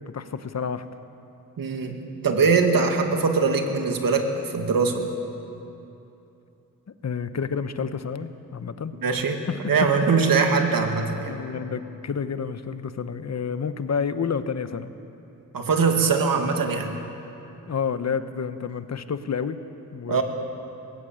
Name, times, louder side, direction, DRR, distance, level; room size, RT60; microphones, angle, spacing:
voice 1, 0.1-0.9 7.0-8.9 9.5-9.7 11.3-14.9 17.7-19.6 19.9-20.2, left 6 dB, 50° left, 11 dB, 1.0 m, -29 dB
voice 2, 1.6-2.0 2.2-5.1 9.0-11.3 15.5-16.9 20.1-20.2, right 4 dB, 75° right, 4 dB, 2.3 m, -22 dB
20.5 x 16.0 x 8.9 m, 2.8 s
cardioid pair, 80°, 34 cm